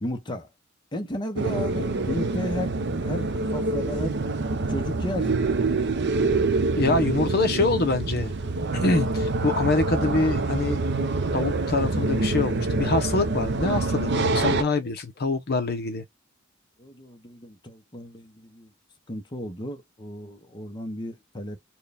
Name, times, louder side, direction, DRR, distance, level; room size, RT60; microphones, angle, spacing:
voice 1, 0.0-0.5 0.9-2.7 3.0-4.2 4.7-5.3 14.7-14.9 16.8-18.7 19.1-21.6, left 1 dB, 20° left, 0.8 m, -34 dB
sound 1, 1.4-14.6, right 3 dB, 60° right, 0.6 m, -26 dB
voice 2, 6.8-8.3 8.7-10.8 11.3-16.0, left 3 dB, 55° left, 0.7 m, -25 dB
4.4 x 2.3 x 3.4 m
head